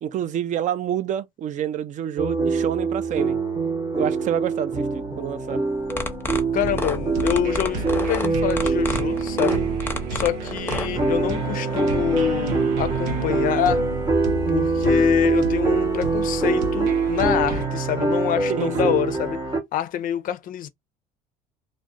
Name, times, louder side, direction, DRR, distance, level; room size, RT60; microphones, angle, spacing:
voice 1, 0.0-3.4 4.0-5.6 18.5-18.9, right 10 dB, 45° right, 0.4 m, -28 dB
sound 1, 2.2-19.6, right 4 dB, 20° right, 0.8 m, -24 dB
sound 2, 5.8-10.9, left 3 dB, 15° left, 0.6 m, -29 dB
voice 2, 6.5-9.6 10.1-13.8 14.5-19.4 19.7-20.7, left 11 dB, 55° left, 0.4 m, -26 dB
sound 3, 6.6-17.7, right 4 dB, 90° right, 0.7 m, -32 dB
2.4 x 2.1 x 2.4 m
supercardioid pair, 90°, 17 cm